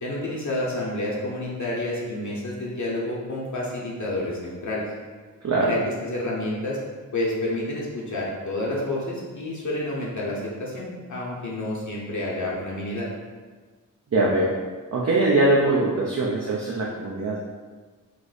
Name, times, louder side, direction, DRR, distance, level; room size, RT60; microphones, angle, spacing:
voice 1, 0.0-4.9 5.6-5.8 6.1-6.8 7.1-13.1, left 1 dB, 55° left, -4 dB, 0.8 m, -29 dB
voice 2, 5.4-5.8 14.1-14.5 14.9-17.4, right 2 dB, 50° right, -4 dB, 0.6 m, -22 dB
3.1 x 2.0 x 3.9 m, 1.4 s
cardioid pair, 45°, 35 cm